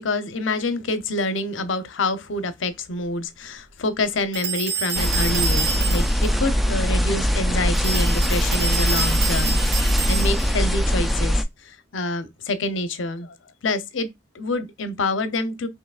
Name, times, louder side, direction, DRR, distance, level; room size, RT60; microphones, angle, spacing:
voice 1, 0.0-13.3 13.6-14.1 14.3-15.7, left 2 dB, 85° left, 0.7 m, -27 dB
sound 1, 4.3-6.3 7.8-10.6, right 5 dB, 85° right, 1.8 m, -28 dB
sound 2, 4.9-11.4, equal, ahead, 0.4 m, -21 dB
5.6 x 3.0 x 2.4 m
head